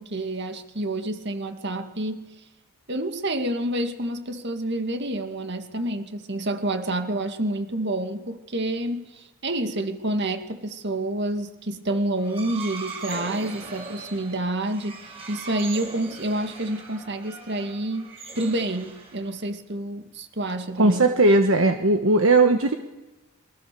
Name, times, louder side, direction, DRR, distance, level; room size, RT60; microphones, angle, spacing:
voice 1, 0.0-2.3 2.9-21.1, right 1 dB, 50° right, 7 dB, 2.2 m, -28 dB
sound 1, 12.2-19.4, right 4 dB, 30° right, 5.8 m, -40 dB
voice 2, 20.8-22.8, right 2 dB, 70° right, 6 dB, 1.4 m, -18 dB
28.5 x 23.5 x 7.0 m, 1.1 s
head